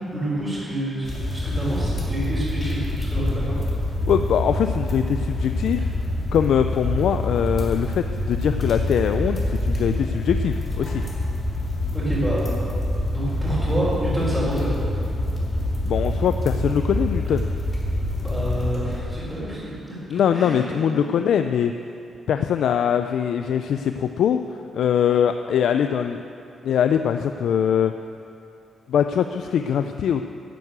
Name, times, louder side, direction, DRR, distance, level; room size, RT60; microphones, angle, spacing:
voice 1, 0.1-3.6 11.9-12.5 13.1-14.7 18.2-20.0 20.3-21.0, right 1 dB, ahead, -11 dB, 4.0 m, -28 dB
sound 1, 1.0-19.4, left 1 dB, 30° left, 2.8 m, -26 dB
voice 2, 4.1-5.9 6.3-11.0 15.8-17.5 20.1-21.7 22.3-24.4 24.7-26.2 26.6-27.9 28.9-30.2, left 8 dB, 80° left, 8 dB, 0.4 m, -22 dB
11.5 x 9.4 x 8.0 m, 2.7 s
wide cardioid pair, 145°, 0 cm